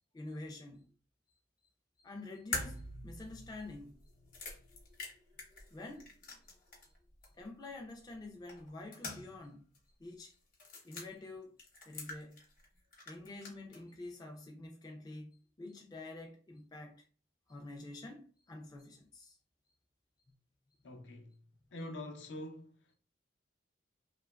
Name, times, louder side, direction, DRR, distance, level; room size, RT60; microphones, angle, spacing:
voice 1, 0.1-0.9 2.0-4.0 5.7-6.1 7.3-9.6 10.0-10.4 10.8-11.5 11.9-12.4 13.1-17.0 17.5-19.4, left 2 dB, 20° left, 0.3 m, -48 dB
sound 1, 2.5-7.0 7.2-7.3 8.5-9.5 9.7-9.8 10.5-11.1 11.6-12.7 12.9-13.8, left 3 dB, 45° left, 0.8 m, -44 dB
voice 2, 20.8-21.4 21.7-22.9, left 1 dB, 75° left, 0.5 m, -45 dB
2.8 x 2.2 x 2.2 m
head